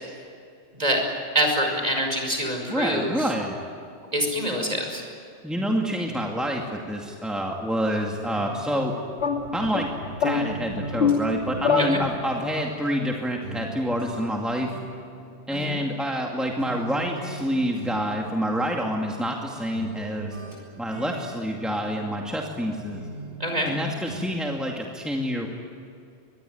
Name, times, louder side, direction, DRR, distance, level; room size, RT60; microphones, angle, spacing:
voice 1, 1.3-3.3 4.1-5.0 11.8-12.0 15.5-15.8 23.4-23.7, equal, 35° right, 3 dB, 5.6 m, -25 dB
voice 2, 2.7-3.6 5.4-8.9 9.5-9.9 10.2-14.7 15.5-20.4 20.8-23.0 23.7-25.5, equal, ahead, 0 dB, 2.3 m, -27 dB
sound 1, 8.3-9.9 10.3-13.1 13.4-16.3 16.6-17.5 17.7-19.4 19.7-22.6 22.9-23.8 24.1-24.2, right 2 dB, 80° right, 7.9 m, -40 dB
sound 2, 9.2-12.6, left 5 dB, 65° left, 2.3 m, -26 dB
24.5 x 21.0 x 9.4 m, 2.5 s
omnidirectional pair, 1.2 m